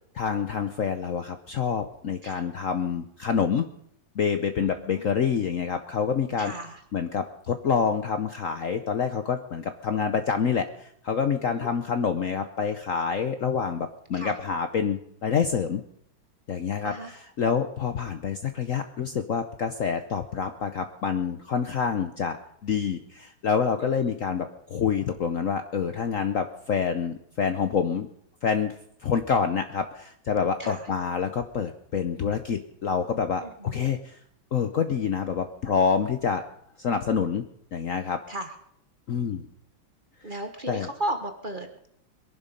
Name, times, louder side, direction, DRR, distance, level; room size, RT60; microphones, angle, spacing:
voice 1, 0.1-3.6 4.2-6.5 6.9-15.8 16.5-16.9 17.4-22.4 22.6-28.1 28.4-28.7 29.0-34.2 34.5-36.4 36.8-37.4 37.7-38.2 39.1-39.5 40.7-40.9, left 6 dB, 55° left, 8 dB, 1.0 m, -27 dB
voice 2, 4.6-5.0 6.4-6.8 11.4-11.7 14.1-14.4 16.8-17.1 23.8-24.1 30.6-30.9 33.4-33.9 38.3-38.5 40.2-41.9, right 1 dB, 30° right, 6 dB, 1.3 m, -35 dB
22.0 x 11.5 x 5.2 m, 0.70 s
omnidirectional pair, 2.1 m